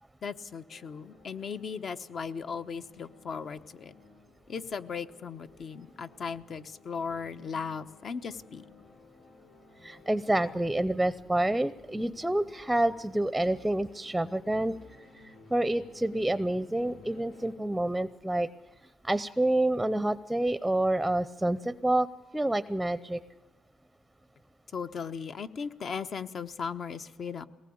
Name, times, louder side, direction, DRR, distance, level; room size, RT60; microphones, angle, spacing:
voice 1, 0.2-3.9 4.5-8.6 24.7-27.5, left 6 dB, 55° left, 10 dB, 1.1 m, -37 dB
sound 1, 0.7-17.5, left 3 dB, 80° left, 4.9 m, -56 dB
voice 2, 9.8-14.7 15.5-18.5 19.0-22.1 22.3-23.2, right 1 dB, 5° right, 16 dB, 0.7 m, -28 dB
22.5 x 19.0 x 8.7 m, 1.1 s
cardioid pair, 90°, 0 cm